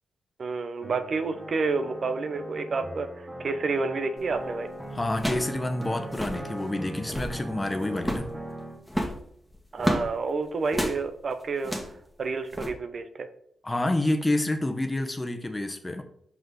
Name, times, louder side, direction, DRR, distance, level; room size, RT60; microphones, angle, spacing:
voice 1, 0.4-4.7 9.7-11.7 12.2-13.3, right 4 dB, 60° right, 9 dB, 0.7 m, -29 dB
sound 1, 0.8-8.8, right 1 dB, 30° right, 2.0 m, -40 dB
sound 2, 4.2-4.4 5.1-5.5 5.8-5.9 6.1-6.4 6.9-7.4 8.0-8.3 8.9-10.1 10.7-11.0 11.6-12.0 12.5-12.7, equal, ahead, 1.7 m, -30 dB
voice 2, 4.9-8.3 13.6-16.0, left 1 dB, 25° left, 6 dB, 1.0 m, -28 dB
5.8 x 5.2 x 3.9 m, 0.72 s
supercardioid pair, 45°, 0 cm